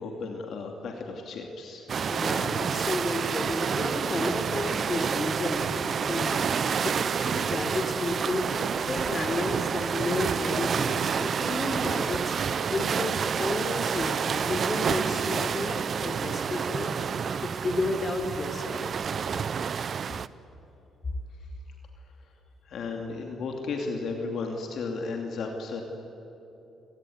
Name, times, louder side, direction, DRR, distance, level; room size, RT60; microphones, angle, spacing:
voice 1, 0.0-1.9 22.6-25.8, left 4 dB, 65° left, 2 dB, 2.7 m, -34 dB
sound 1, 1.9-20.3, right 6 dB, 50° right, 0.7 m, -29 dB
voice 2, 2.1-8.5 8.8-12.3 12.7-16.9 17.4-18.9, left 2 dB, 35° left, 6 dB, 3.9 m, -32 dB
29.0 x 18.5 x 9.6 m, 3.0 s
cardioid pair, 90°, 0 cm